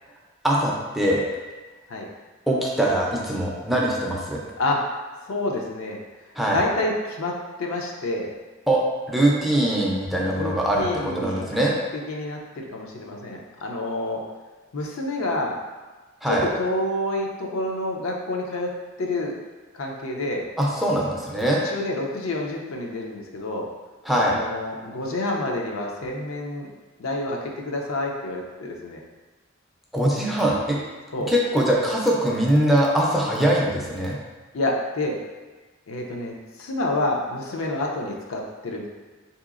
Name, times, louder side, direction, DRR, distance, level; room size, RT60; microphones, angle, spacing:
voice 1, 0.4-1.3 2.5-4.4 6.4-6.6 8.7-8.8 9.1-11.7 16.2-16.4 20.6-21.6 24.1-24.4 29.9-30.8 31.3-34.2, right 1 dB, ahead, -4 dB, 0.4 m, -22 dB
voice 2, 5.2-6.0 6.5-7.3 7.6-8.3 10.4-14.2 14.7-15.5 16.3-18.7 19.0-19.3 19.7-20.4 21.4-23.7 24.2-26.7 27.0-29.0 31.1-31.3 34.5-35.2 35.9-36.3 36.6-38.9, left 2 dB, 75° left, 0 dB, 0.5 m, -28 dB
3.9 x 2.8 x 2.4 m, 1.3 s
head